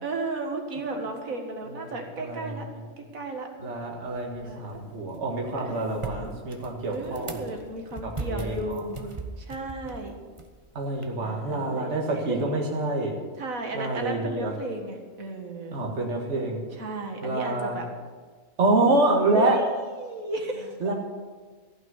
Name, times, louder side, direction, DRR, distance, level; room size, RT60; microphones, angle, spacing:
voice 1, 0.0-2.7 3.0-3.5 4.4-4.8 5.6-5.8 6.8-9.1 9.4-10.1 11.2-12.0 12.3-12.4 13.4-15.8 16.7-17.9 18.8-20.7, right 2 dB, 70° right, 3 dB, 2.2 m, -34 dB
voice 2, 2.2-2.5 3.6-7.4 8.0-8.8 10.8-13.2 13.7-14.5 15.7-16.6 17.2-17.8 18.6-19.6 20.8-20.9, right 2 dB, 50° right, -1 dB, 2.0 m, -27 dB
sound 1, 4.1-11.1, right 3 dB, 25° right, 1.0 m, -40 dB
15.0 x 6.1 x 9.6 m, 1.4 s
omnidirectional pair, 1.5 m